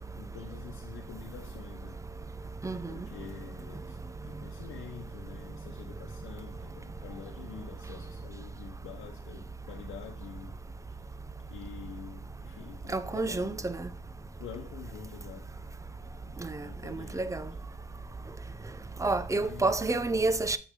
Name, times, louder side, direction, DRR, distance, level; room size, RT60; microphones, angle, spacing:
voice 1, 0.2-2.0 2.9-4.0 4.3-10.6 11.5-13.7 14.4-15.5 16.2-17.4 19.3-19.8, left 8 dB, 85° left, 0.9 m, -47 dB
voice 2, 2.6-3.0 12.9-13.9 16.4-17.4 19.0-20.6, right 3 dB, 15° right, 0.6 m, -29 dB
6.4 x 6.3 x 3.7 m
cardioid pair, 90°, 20 cm